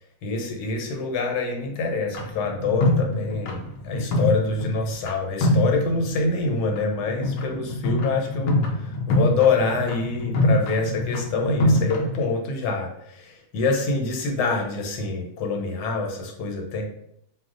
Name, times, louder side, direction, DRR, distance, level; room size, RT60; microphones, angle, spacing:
voice 1, 0.2-16.8, left 3 dB, 85° left, 2 dB, 1.2 m, -26 dB
sound 1, 2.1-5.1 5.4-6.3 6.6-12.1, left 1 dB, 70° left, 0.8 m, -25 dB
2.6 x 2.1 x 3.6 m, 0.72 s
omnidirectional pair, 1.7 m